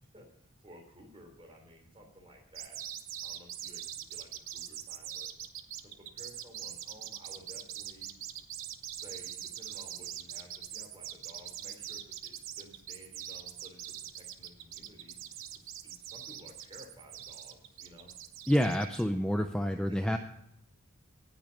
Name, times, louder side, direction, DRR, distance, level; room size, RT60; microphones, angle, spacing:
voice 1, 0.0-5.3 5.8-8.1 8.9-18.1 19.9-20.2, equal, 25° right, 2 dB, 3.2 m, -55 dB
sound 1, 2.5-19.0, right 11 dB, 60° right, 0.9 m, -42 dB
voice 2, 18.5-20.2, equal, 5° left, 6 dB, 0.4 m, -28 dB
18.5 x 6.3 x 5.1 m, 0.80 s
head